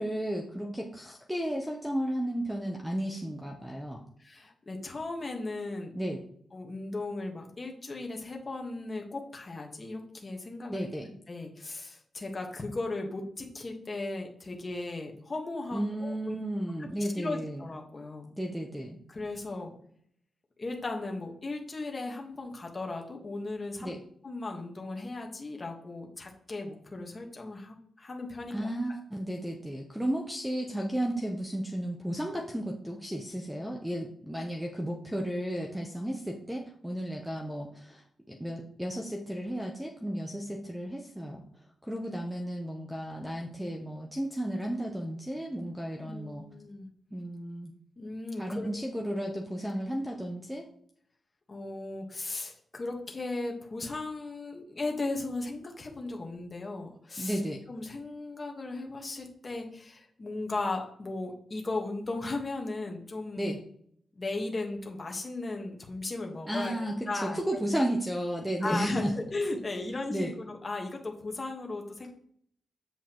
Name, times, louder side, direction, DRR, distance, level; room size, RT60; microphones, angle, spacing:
voice 1, 0.0-4.0 5.9-6.2 10.7-11.1 15.7-17.6 18.4-19.0 23.8-24.0 28.5-38.0 38.3-41.4 41.8-46.4 47.1-47.7 48.4-50.7 57.2-57.6 63.4-63.6 66.5-69.1 70.1-70.3, right 1 dB, 5° right, 1 dB, 0.7 m, -33 dB
voice 2, 4.2-5.9 6.5-16.4 16.8-18.3 19.1-19.7 20.6-23.9 24.2-28.7 46.0-46.9 48.0-48.7 51.5-57.4 57.7-63.5 64.1-66.7 67.1-67.4 68.6-72.1, left 2 dB, 25° left, 2 dB, 1.3 m, -36 dB
8.0 x 7.2 x 3.0 m, 0.65 s
wide cardioid pair, 175°, 0 cm